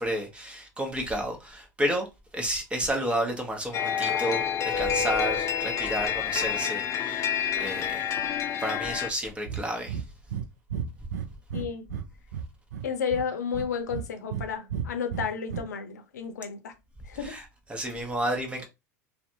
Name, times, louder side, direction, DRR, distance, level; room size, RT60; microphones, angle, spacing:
voice 1, 0.0-2.1 2.3-8.1 8.6-10.0 17.1-18.6, equal, 10° right, 0.9 m, -31 dB
sound 1, 3.7-9.1, left 8 dB, 30° left, 0.5 m, -28 dB
Breathing, 9.4-9.6 9.9-10.0 10.3-10.4 10.7-12.1 12.3-13.2 13.5-14.4 14.7-15.6, right 8 dB, 80° right, 0.4 m, -33 dB
voice 2, 11.5-11.9 12.8-16.7 17.1-17.3, left 6 dB, 85° left, 0.6 m, -32 dB
2.6 x 2.2 x 2.7 m
hypercardioid pair, 90°, 9 cm